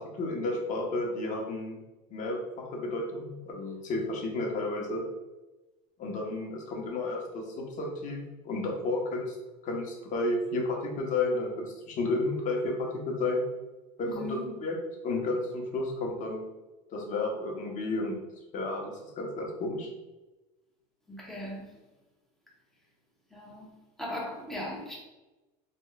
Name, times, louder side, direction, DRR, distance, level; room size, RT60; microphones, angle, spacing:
voice 1, 0.0-1.8 2.1-5.0 6.0-9.4 9.6-13.4 14.0-14.8 15.0-16.5 16.9-18.1 18.5-19.9, left 2 dB, 40° left, -1 dB, 1.1 m, -32 dB
voice 2, 14.0-14.5 21.1-21.7 23.3-23.7 24.0-25.0, left 1 dB, ahead, -4 dB, 1.0 m, -38 dB
4.1 x 3.0 x 2.4 m, 1.1 s
supercardioid pair, 120°, 20 cm